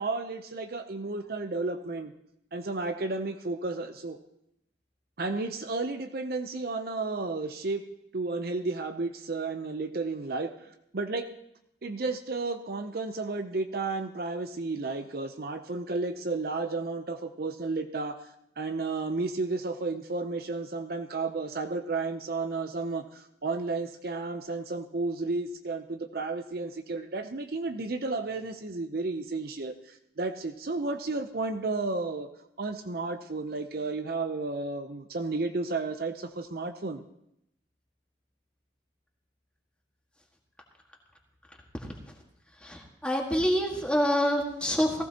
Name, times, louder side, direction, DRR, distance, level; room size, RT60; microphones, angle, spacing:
voice 1, 0.0-2.1 2.5-4.2 5.2-7.8 8.1-11.3 11.8-18.2 18.6-32.3 32.6-37.0, right 3 dB, 55° right, 7 dB, 0.7 m, -32 dB
voice 2, 42.6-45.0, equal, 5° left, 0 dB, 1.7 m, -27 dB
18.0 x 15.0 x 2.9 m, 0.78 s
head